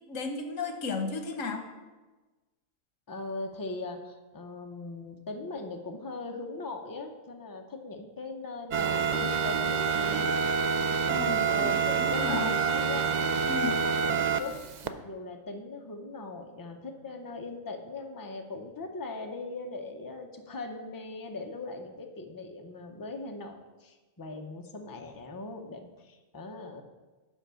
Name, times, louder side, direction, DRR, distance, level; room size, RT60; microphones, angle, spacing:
voice 1, 0.1-1.7 11.1-12.5 13.5-13.7, left 4 dB, 80° left, 6 dB, 1.3 m, -34 dB
voice 2, 3.1-10.3 11.5-13.1 13.7-14.6 14.8-26.8, left 3 dB, 20° left, 4 dB, 0.6 m, -40 dB
sound 1, 8.7-14.9, right 6 dB, 70° right, 0.4 m, -27 dB
10.5 x 3.8 x 6.9 m, 1.2 s
omnidirectional pair, 1.3 m